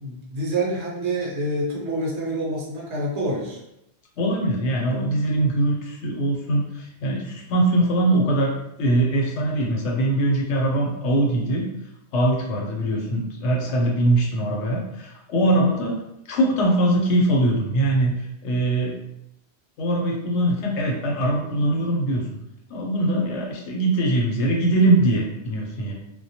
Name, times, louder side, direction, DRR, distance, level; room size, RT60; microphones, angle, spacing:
voice 1, 0.0-3.6, right 1 dB, 75° right, -3 dB, 0.9 m, -27 dB
voice 2, 4.2-8.5 8.8-11.7 12.1-16.0 16.3-19.0 19.8-22.2 22.7-25.9, right 1 dB, 85° left, -1 dB, 0.9 m, -22 dB
2.1 x 2.1 x 2.7 m, 0.85 s
omnidirectional pair, 1.2 m